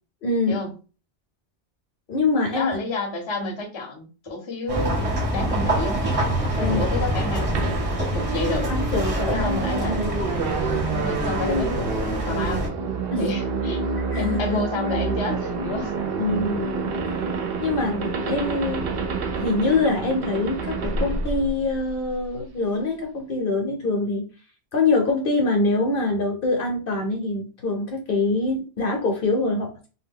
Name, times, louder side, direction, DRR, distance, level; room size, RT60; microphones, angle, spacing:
voice 1, 0.2-0.6 2.1-2.8 6.6-6.8 8.7-9.5 13.1-13.3 14.1-14.6 16.2-17.0 17.6-19.0 19.4-24.3 24.7-29.9, left 3 dB, 60° left, 1 dB, 0.8 m, -24 dB
voice 2, 2.5-6.0 6.6-7.8 8.1-8.7 9.3-10.0 10.9-12.7 13.2-15.9, left 3 dB, 30° left, 1 dB, 0.6 m, -30 dB
sound 1, 4.7-12.7, right 1 dB, 35° right, 0.8 m, -25 dB
sound 2, 7.5-22.3, right 4 dB, 65° right, 0.7 m, -28 dB
2.2 x 2.1 x 3.5 m, 0.34 s
omnidirectional pair, 1.2 m